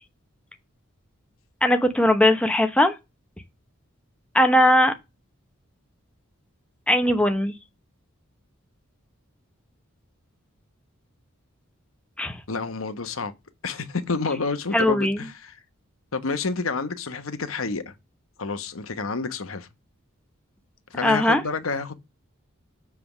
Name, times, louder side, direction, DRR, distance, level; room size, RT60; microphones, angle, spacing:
voice 1, 1.6-2.9 4.3-4.9 6.9-7.6 12.2-12.4 14.7-15.2 21.0-21.4, left 1 dB, 5° left, 0.8 m, -19 dB
voice 2, 12.5-13.3 13.6-15.5 16.1-17.9 18.4-19.7 20.9-21.9, left 4 dB, 80° left, 1.1 m, -29 dB
7.6 x 3.6 x 5.9 m
head